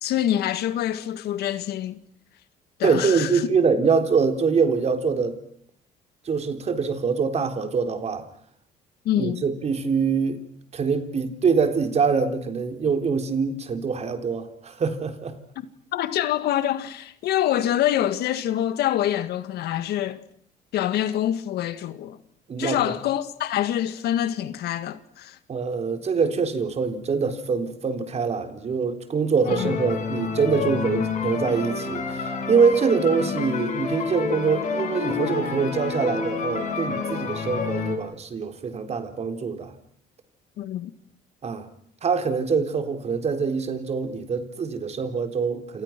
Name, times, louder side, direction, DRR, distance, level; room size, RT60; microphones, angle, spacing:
voice 1, 0.0-2.0 2.8-3.5 9.1-9.4 15.6-20.2 20.7-22.2 22.6-25.4 29.5-29.8 40.6-40.9, left 11 dB, 75° left, 1.9 m, -26 dB
voice 2, 2.8-5.4 6.3-8.2 9.2-10.4 10.7-15.4 22.5-22.9 25.5-39.7 41.4-41.7 42.0-45.8, right 5 dB, 40° right, 3.9 m, -24 dB
sound 1, 29.4-38.0, left 5 dB, 50° left, 7.3 m, -29 dB
28.5 x 28.5 x 6.1 m
cardioid pair, 110°, 17 cm